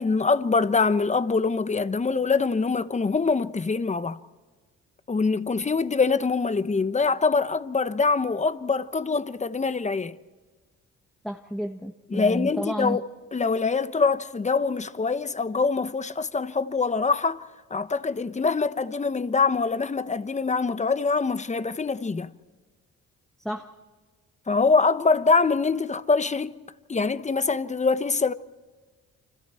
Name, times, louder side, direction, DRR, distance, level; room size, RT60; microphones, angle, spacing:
voice 1, 0.0-4.2 5.1-10.1 12.1-13.0 13.3-17.4 17.7-22.3 24.5-26.6 26.9-28.3, left 4 dB, 25° left, 1.0 m, -24 dB
voice 2, 11.2-13.0 23.4-23.7, equal, ahead, 1.4 m, -31 dB
30.0 x 25.5 x 4.5 m
cardioid pair, 90°, 30 cm